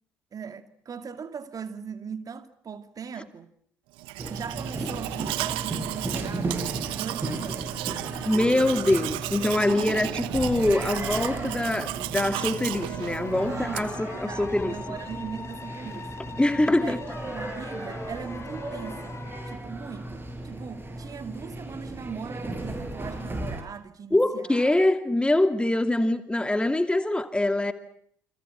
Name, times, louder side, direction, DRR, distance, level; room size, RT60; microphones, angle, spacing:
voice 1, 0.3-3.5 4.3-6.6 6.9-7.6 9.7-10.1 13.5-16.1 16.7-19.2 19.5-24.7, right 6 dB, 40° right, 2.5 m, -39 dB
Domestic sounds home sounds, 4.0-14.1, right 19 dB, 65° right, 1.0 m, -34 dB
sound 1, 4.2-23.6, right 1 dB, 20° right, 7.8 m, -36 dB
voice 2, 8.2-14.7 16.4-17.0 24.1-27.7, left 1 dB, 10° left, 2.6 m, -24 dB
sound 2, 12.2-19.6, left 5 dB, 30° left, 3.2 m, -43 dB
29.5 x 26.5 x 6.0 m
figure-of-eight pair, 50°, 10 cm